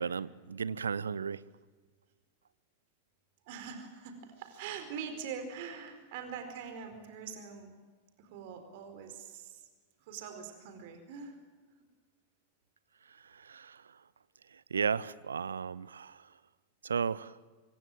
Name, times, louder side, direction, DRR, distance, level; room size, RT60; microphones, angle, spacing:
voice 1, 0.0-1.4 13.3-13.8 14.7-16.2 16.8-17.3, right 6 dB, 70° right, 0.8 m, -34 dB
voice 2, 3.5-7.7 8.2-9.6 10.0-11.4, right 6 dB, 50° right, 4.6 m, -43 dB
25.5 x 24.0 x 9.3 m
figure-of-eight pair, 90°, 0 cm